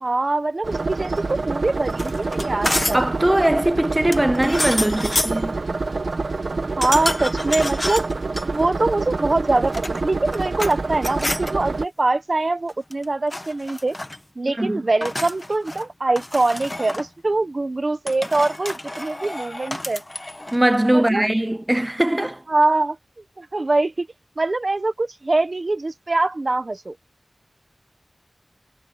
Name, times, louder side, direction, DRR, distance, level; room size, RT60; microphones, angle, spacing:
voice 1, 0.0-3.0 6.8-8.1 8.5-14.0 14.3-20.0 20.9-21.3 22.5-23.0 23.4-24.1 24.4-26.9, right 2 dB, 50° right, 1.3 m, -23 dB
sound 1, 0.6-11.8, right 3 dB, 75° right, 2.0 m, -27 dB
sound 2, 1.9-3.1 4.1-5.4 6.8-8.4 9.6-10.8 11.0-11.5 12.7-13.0 13.3-14.2 15.0-15.9 16.2-17.1 18.1-20.6, left 1 dB, 25° left, 1.3 m, -29 dB
voice 2, 2.9-5.6 14.6-14.8 20.5-22.4, right 1 dB, 20° right, 0.8 m, -20 dB
wide cardioid pair, 70°, 0 cm